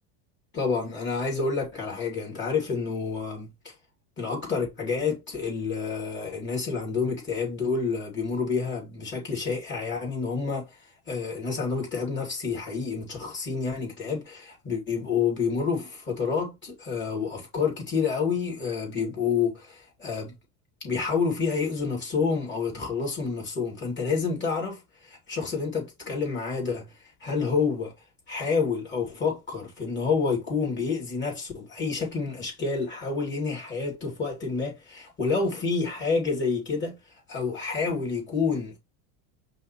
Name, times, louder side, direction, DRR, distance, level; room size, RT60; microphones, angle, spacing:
voice 1, 0.5-3.7 4.2-10.8 11.1-20.4 20.8-27.9 28.3-37.0 37.3-38.8, left 5 dB, 25° left, 2.6 m, -29 dB
5.5 x 2.2 x 4.3 m
supercardioid pair, 115°, 44 cm